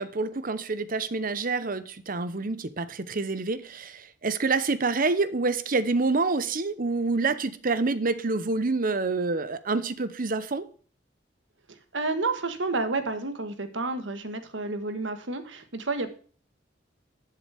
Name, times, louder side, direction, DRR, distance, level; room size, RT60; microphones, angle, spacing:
voice 1, 0.0-10.7, right 3 dB, 50° right, 0.9 m, -27 dB
voice 2, 11.7-16.1, right 3 dB, 80° right, 1.5 m, -30 dB
12.0 x 7.5 x 3.5 m
head